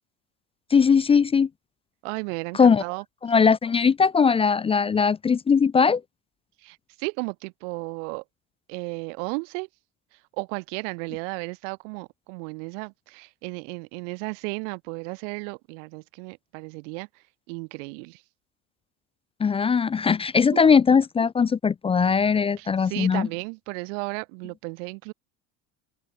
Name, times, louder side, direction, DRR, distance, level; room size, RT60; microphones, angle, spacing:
voice 1, 0.7-1.5 2.5-2.8 3.2-6.0 19.4-23.3, left 6 dB, 15° left, 0.5 m, -20 dB
voice 2, 2.0-3.0 6.6-8.2 8.7-9.7 10.3-17.1 17.5-18.2 20.5-20.6 22.6-25.1, right 35 dB, 75° right, 1.3 m, -34 dB
open air
cardioid pair, 140°, 37 cm